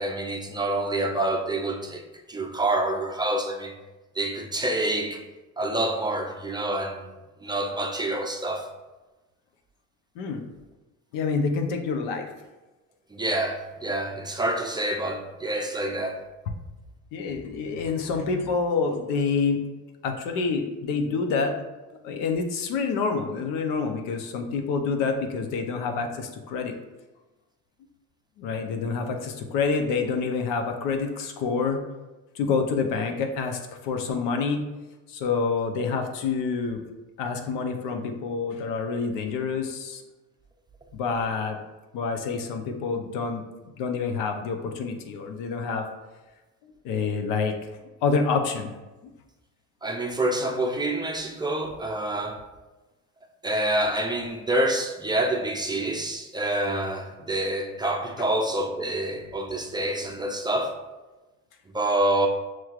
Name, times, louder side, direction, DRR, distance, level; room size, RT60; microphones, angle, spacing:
voice 1, 0.0-3.8 4.2-5.2 5.6-7.1 7.4-8.7 13.1-16.2 49.8-52.4 53.4-60.8 61.7-62.3, right 1 dB, 15° right, 3 dB, 0.4 m, -27 dB
voice 2, 10.2-10.5 11.1-12.3 17.1-19.6 20.0-21.5 22.0-26.7 28.4-31.8 32.3-34.7 35.1-36.8 37.2-40.0 40.9-41.6 41.9-43.4 43.8-45.9 46.8-48.7, left 5 dB, 90° left, 4 dB, 0.7 m, -27 dB
5.9 x 3.1 x 2.4 m, 1.1 s
cardioid pair, 100°, 32 cm